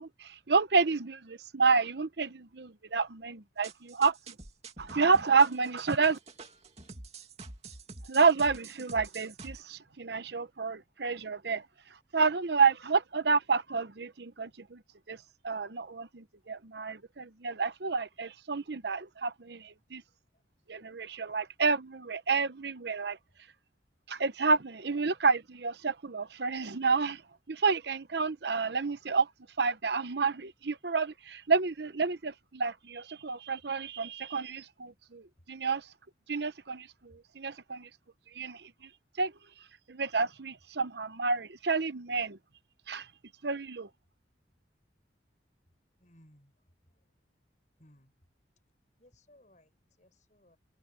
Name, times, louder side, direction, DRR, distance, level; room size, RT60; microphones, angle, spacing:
voice 1, 0.0-4.2 4.8-6.2 8.1-11.6 12.1-14.8 15.1-15.2 15.4-20.0 20.7-23.2 24.1-27.2 27.5-29.3 29.6-35.9 36.3-37.9 38.3-38.7 39.2-39.3 39.9-42.4 42.9-43.1 43.4-43.9, right 4 dB, 65° right, 0.9 m, -29 dB
sound 1, 3.6-9.6, right 3 dB, 35° right, 2.4 m, -47 dB
voice 2, 46.0-46.5 47.8-48.1 49.0-49.7 50.0-50.6, left 1 dB, 40° left, 6.2 m, -61 dB
head